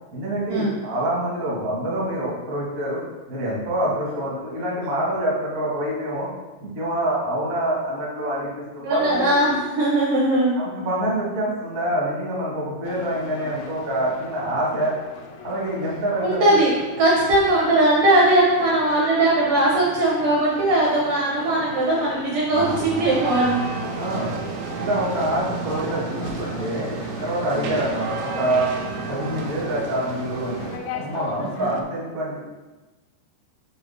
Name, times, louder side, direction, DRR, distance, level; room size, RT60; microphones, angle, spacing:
voice 1, 0.1-3.0 3.3-6.3 6.6-8.5 8.7-9.5 10.5-14.9 15.4-16.5 24.0-24.4 24.8-26.9 27.2-28.7 29.1-32.4, right 1 dB, 55° right, -6 dB, 0.8 m, -26 dB
voice 2, 8.8-10.5 16.2-16.7 17.0-23.6 27.5-27.8 31.4-31.7, right 1 dB, 70° right, -5 dB, 2.0 m, -19 dB
sound 1, 12.8-31.8, left 5 dB, 85° left, 2.2 m, -39 dB
sound 2, 22.5-30.8, right 4 dB, 85° right, 3.1 m, -31 dB
6.9 x 3.4 x 5.5 m, 1.2 s
omnidirectional pair, 5.0 m